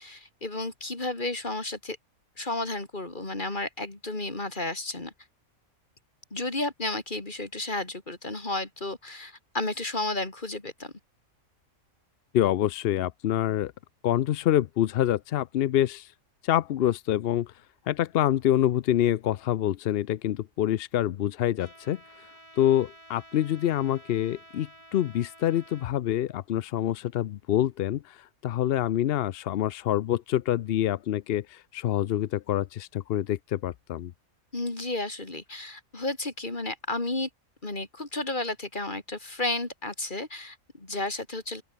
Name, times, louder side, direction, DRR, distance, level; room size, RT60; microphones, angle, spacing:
voice 1, 0.0-2.0 2.4-5.1 6.3-10.9 34.5-37.3 37.6-41.6, left 2 dB, 35° left, 3.6 m, -32 dB
voice 2, 12.3-13.7 14.0-16.1 16.4-17.5 17.9-22.0 22.6-34.1, left 12 dB, 65° left, 0.6 m, -26 dB
Trumpet, 21.6-25.9, right 1 dB, 20° right, 6.1 m, -52 dB
open air
omnidirectional pair, 1.4 m